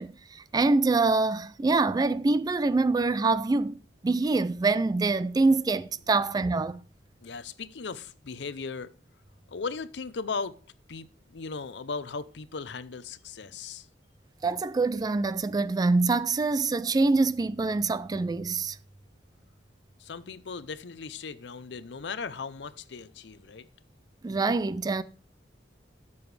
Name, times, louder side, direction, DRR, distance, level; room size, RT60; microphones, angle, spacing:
voice 1, 0.0-6.8 14.4-18.8 24.2-25.0, right 3 dB, 20° right, 0.3 m, -25 dB
voice 2, 7.2-8.9 9.5-10.6 10.9-13.9 20.0-23.7, left 4 dB, 70° left, 0.6 m, -37 dB
12.5 x 7.0 x 3.3 m
head